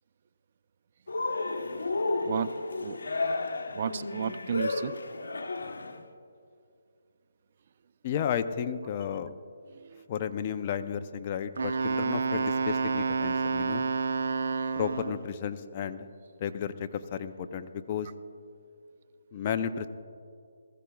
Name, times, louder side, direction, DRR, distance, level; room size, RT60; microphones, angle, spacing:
Cheering, 1.1-6.0, left 3 dB, 85° left, 0.9 m, -32 dB
voice 1, 2.2-2.5 2.8-3.0 3.7-4.9 9.7-10.1, right 7 dB, 45° right, 14 dB, 0.4 m, -33 dB
voice 2, 8.0-9.3 10.1-13.8 14.8-16.1 16.4-18.1 19.3-19.9, left 8 dB, 30° left, 9 dB, 0.5 m, -33 dB
Wind instrument woodwind instrument, 11.6-15.3, right 4 dB, 70° right, 0.7 m, -29 dB
20.0 x 14.5 x 2.3 m, 2.5 s
hypercardioid pair, 160°, 0 cm